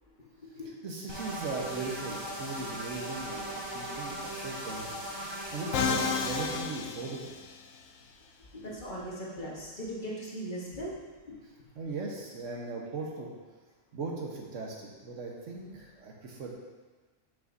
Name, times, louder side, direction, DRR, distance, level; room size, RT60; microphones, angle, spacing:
voice 1, 0.8-5.0 5.3-7.3 11.8-13.3 13.9-16.5, right 3 dB, 70° right, -1 dB, 1.3 m, -38 dB
sound 1, 1.1-6.6, right 1 dB, 25° right, 0.7 m, -38 dB
Musical instrument, 5.7-7.8, left 6 dB, 75° left, 0.9 m, -31 dB
voice 2, 8.5-11.0, equal, 40° left, -5 dB, 1.2 m, -38 dB
7.1 x 6.1 x 2.6 m, 1.3 s
omnidirectional pair, 1.4 m